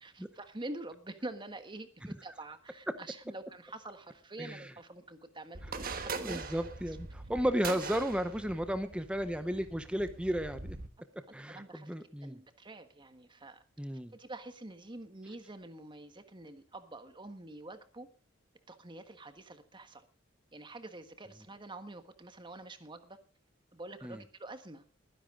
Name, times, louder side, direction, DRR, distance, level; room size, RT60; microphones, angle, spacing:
voice 1, 0.0-6.5 6.9-7.0 11.5-11.9 12.2-13.6 14.1-18.1 18.7-20.1 20.5-23.2 23.7-24.8, right 2 dB, 25° right, 9 dB, 1.4 m, -46 dB
sound 1, 5.5-10.9, right 4 dB, 50° right, 1.4 m, -42 dB
voice 2, 6.2-10.8 11.3-12.4 13.8-14.1 24.0-24.2, equal, 5° right, 10 dB, 0.8 m, -34 dB
20.5 x 10.5 x 3.8 m, 0.36 s
head